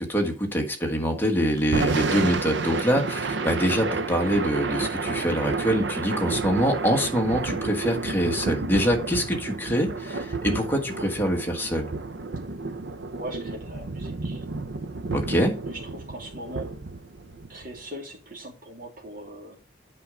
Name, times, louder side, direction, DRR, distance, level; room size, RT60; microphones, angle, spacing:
voice 1, 0.0-11.9 15.1-15.5, equal, 10° left, 2 dB, 1.6 m, -25 dB
Thunder / Rain, 1.6-17.8, right 3 dB, 80° right, 0.7 m, -31 dB
voice 2, 13.1-14.4 15.7-16.7 17.5-19.6, right 1 dB, 50° right, -2 dB, 2.8 m, -40 dB
8.4 x 5.4 x 4.9 m, 0.35 s
head